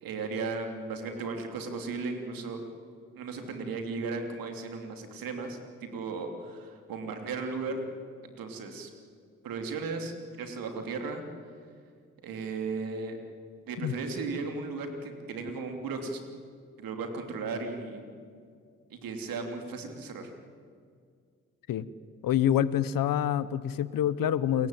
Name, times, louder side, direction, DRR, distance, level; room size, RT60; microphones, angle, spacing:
voice 1, 0.0-2.6 3.1-7.8 8.2-8.9 9.4-11.2 12.2-13.2 13.7-16.3 16.8-18.1 18.9-20.3, right 4 dB, 85° right, 5 dB, 3.0 m, -36 dB
voice 2, 22.2-24.7, left 10 dB, 80° left, 17 dB, 1.0 m, -26 dB
29.0 x 15.0 x 9.2 m, 2.1 s
supercardioid pair, 45°, 34 cm